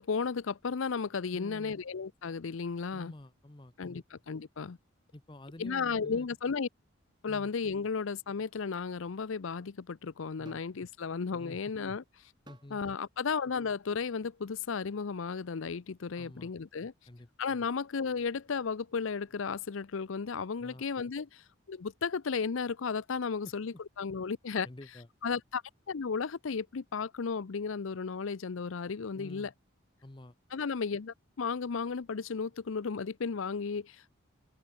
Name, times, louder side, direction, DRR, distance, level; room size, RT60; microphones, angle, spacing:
voice 1, 0.0-3.1 3.8-4.8 5.6-6.7 7.2-12.0 12.7-16.9 17.4-24.7 25.2-25.6 25.9-29.5 30.5-34.1, left 5 dB, 75° left, 0.6 m, -34 dB
voice 2, 1.3-1.8 2.9-4.0 5.1-6.3 7.3-7.5 10.4-10.6 11.4-11.6 12.5-12.8 16.2-16.5 17.1-17.3 20.6-20.8 23.4-23.5 24.6-25.1 29.1-29.5 30.0-30.4, left 1 dB, 25° left, 0.9 m, -49 dB
sound 1, 10.4-10.8 12.5-12.8 13.8-14.0, right 1 dB, 20° right, 3.6 m, -56 dB
open air
head